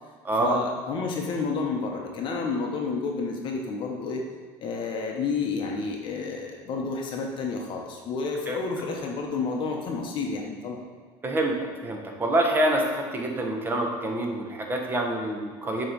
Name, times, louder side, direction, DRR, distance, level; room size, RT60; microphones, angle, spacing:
voice 1, 0.4-4.2 4.6-10.8, left 4 dB, 50° left, 1 dB, 0.9 m, -30 dB
voice 2, 11.2-11.5 11.8-12.8 13.1-15.9, right 1 dB, 20° right, 1 dB, 1.1 m, -26 dB
6.8 x 3.2 x 5.2 m, 1.5 s
supercardioid pair, 100°, 11 cm